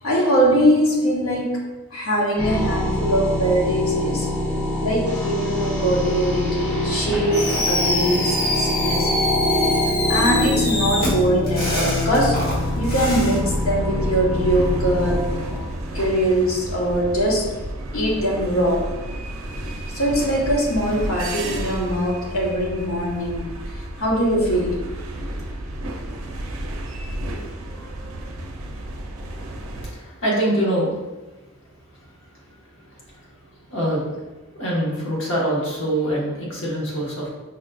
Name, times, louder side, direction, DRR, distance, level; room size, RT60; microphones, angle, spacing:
voice 1, 0.0-1.6 1.9-4.3 4.8-9.1 10.1-12.4 12.8-15.2 15.9-17.5 17.9-18.9 19.9-24.8, equal, 90° left, -3 dB, 0.9 m, -22 dB
sound 1, 2.4-16.5, left 1 dB, 10° left, 0.7 m, -25 dB
Fireworks, 7.3-13.4, left 1 dB, 45° left, 1.3 m, -25 dB
sound 2, 12.2-29.9, right 1 dB, 85° right, 0.5 m, -32 dB
voice 2, 29.2-31.0 31.9-33.3 33.6-34.2 34.5-37.3, right 1 dB, 65° left, -4 dB, 1.1 m, -25 dB
5.1 x 2.5 x 2.2 m, 1.2 s
head